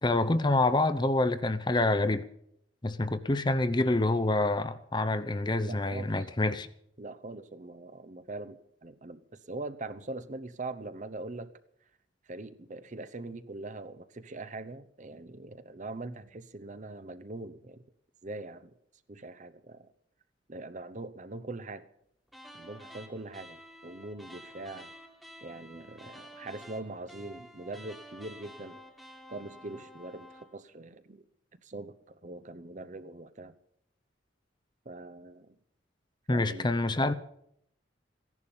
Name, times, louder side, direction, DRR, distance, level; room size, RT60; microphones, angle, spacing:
voice 1, 0.0-2.2 2.8-6.7 36.3-37.1, left 2 dB, 25° left, 0.7 m, -27 dB
voice 2, 5.6-6.3 7.0-11.5 12.3-17.8 18.2-18.7 19.1-19.9 20.5-21.9 22.5-24.9 25.4-28.8 29.3-31.2 31.6-33.6 34.8-35.5 36.3-36.7, right 2 dB, 40° right, 0.8 m, -42 dB
sound 1, 22.3-30.6, equal, ahead, 1.6 m, -50 dB
15.5 x 11.0 x 7.1 m
head